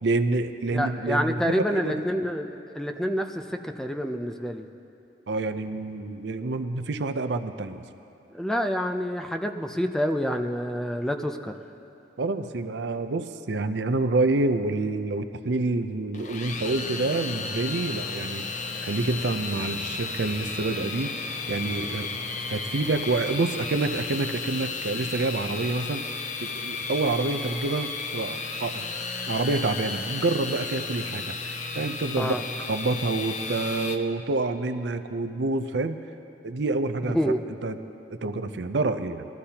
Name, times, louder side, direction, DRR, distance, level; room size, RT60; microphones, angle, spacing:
voice 1, 0.0-1.9 5.3-7.8 12.2-21.1 21.5-22.2 22.5-26.0 26.4-28.9 29.3-32.3 32.7-36.0 36.4-37.2 37.6-37.8 38.2-39.3, right 3 dB, 75° right, 9 dB, 0.6 m, -27 dB
voice 2, 0.7-4.7 8.3-11.5 32.2-32.4 37.0-37.4, equal, 5° left, 5 dB, 0.5 m, -27 dB
sound 1, 16.1-34.0, left 4 dB, 45° left, 0.7 m, -33 dB
sound 2, 16.5-23.7, left 1 dB, 60° left, 3.5 m, -46 dB
21.5 x 13.5 x 2.9 m, 2.9 s
head